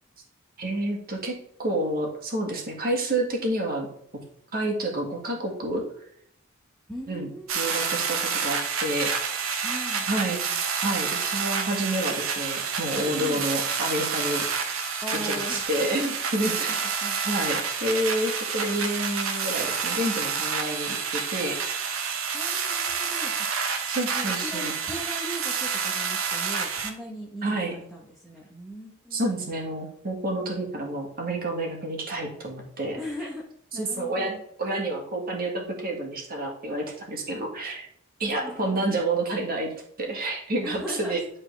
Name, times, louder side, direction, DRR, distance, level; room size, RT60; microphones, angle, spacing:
voice 1, 0.6-1.3 1.6-3.9 4.5-5.8 7.1-7.3 7.5-9.1 10.1-10.5 10.7-14.5 15.2-16.8 17.3-21.5 23.9-24.7 27.4-27.7 29.1-33.0 33.7-34.3 34.6-37.9 38.2-39.7 40.0-41.2, right 1 dB, 45° right, 0 dB, 2.0 m, -29 dB
voice 2, 6.9-7.7 9.6-10.0 13.1-13.4 15.0-15.6 16.4-17.5 22.3-23.5 24.1-29.6 33.0-33.4 33.7-34.4 38.2-39.0 40.6-41.2, equal, ahead, -4 dB, 1.1 m, -39 dB
sound 1, 7.5-26.9, right 6 dB, 70° right, 1.1 m, -29 dB
10.5 x 4.3 x 3.4 m, 0.67 s
head